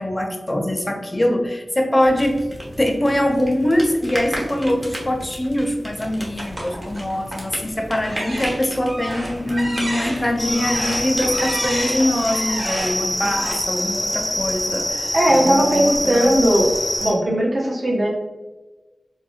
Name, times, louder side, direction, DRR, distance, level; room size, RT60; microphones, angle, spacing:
voice 1, 0.0-2.4 2.8-16.4, left 1 dB, 25° left, 2 dB, 0.5 m, -23 dB
sound 1, 2.0-11.8, equal, 15° right, 1.0 m, -34 dB
sound 2, 6.4-7.5 8.0-13.5, right 1 dB, 40° right, 1.4 m, -31 dB
sound 3, 10.4-17.1, equal, 10° left, 1.2 m, -25 dB
voice 2, 15.1-16.7 17.0-18.1, right 1 dB, 60° right, -2 dB, 0.9 m, -18 dB
4.2 x 2.5 x 2.3 m, 1.2 s
wide cardioid pair, 65°, 0 cm